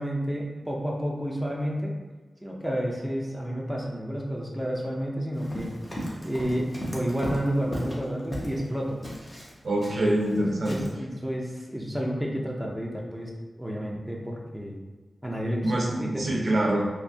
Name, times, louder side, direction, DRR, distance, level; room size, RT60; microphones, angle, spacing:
voice 1, 0.0-1.9 2.4-5.7 6.2-9.0 10.4-14.8 15.2-16.3, equal, ahead, -3 dB, 0.5 m, -30 dB
Run, 5.3-8.7 9.0-10.4 10.6-10.9, equal, 30° left, 0.8 m, -36 dB
voice 2, 9.6-10.7 15.6-16.9, right 1 dB, 65° right, -2 dB, 0.6 m, -25 dB
3.2 x 2.6 x 2.6 m, 1.3 s
wide cardioid pair, 85°, 0 cm